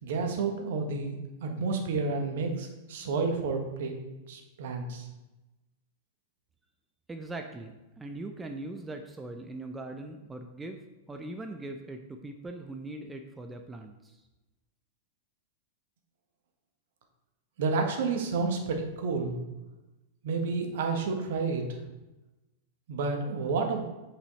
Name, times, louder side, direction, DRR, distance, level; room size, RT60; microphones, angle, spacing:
voice 1, 0.0-3.9 4.3-5.1 17.6-19.4 20.2-21.6 22.9-23.8, right 4 dB, 55° right, 3 dB, 1.4 m, -30 dB
voice 2, 7.1-10.8 11.1-14.2, right 2 dB, 10° right, 4 dB, 0.6 m, -41 dB
8.2 x 6.0 x 4.1 m, 1.0 s
figure-of-eight pair, 95°, 0 cm